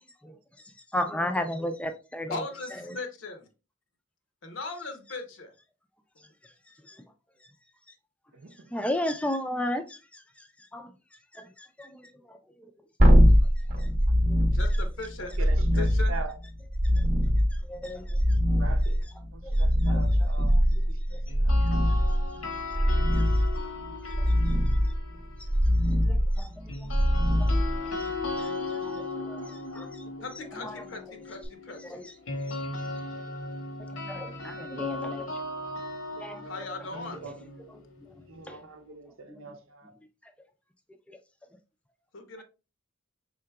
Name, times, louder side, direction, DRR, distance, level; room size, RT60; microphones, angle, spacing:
voice 1, 0.9-2.4 2.9-3.0 6.9-7.0 8.7-10.5 10.7-10.9 11.3-12.4 13.8-13.9 14.3-14.4 17.0-17.1 17.6-18.4 19.4-20.0 20.5-20.6 21.1-21.2 23.1-23.4 24.2-24.3 25.4-25.5 26.0-26.9 27.4-27.5 28.0-30.0 30.6-30.8 31.8-32.1 32.5-32.6 33.9-35.3 36.2-36.5 38.0-38.1 38.5-38.6 39.3-39.5 41.1-41.2, left 1 dB, 5° left, 0.4 m, -35 dB
voice 2, 2.3-3.5 4.4-5.5 14.5-16.1 30.2-32.0 36.4-37.2 42.1-42.4, left 3 dB, 65° left, 0.8 m, -38 dB
voice 3, 8.3-8.7 15.3-16.3 18.5-19.0 19.3-21.6 36.9-37.7 38.3-39.9, right 3 dB, 80° right, 0.7 m, -43 dB
sound 1, 13.0-28.3 31.4-31.5, equal, 40° right, 0.9 m, -23 dB
sound 2, 21.3-25.5 26.7-38.6, left 2 dB, 85° left, 1.2 m, -37 dB
4.8 x 3.8 x 2.2 m
head